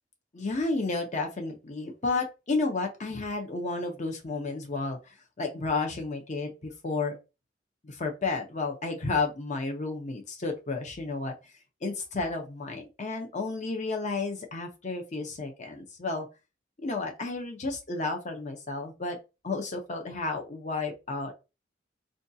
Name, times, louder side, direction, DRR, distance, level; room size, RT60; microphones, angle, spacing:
voice 1, 0.3-7.1 7.8-11.5 11.8-16.3 16.8-19.2 19.4-21.3, left 3 dB, 40° left, 0.7 m, -32 dB
4.9 x 2.4 x 2.7 m
head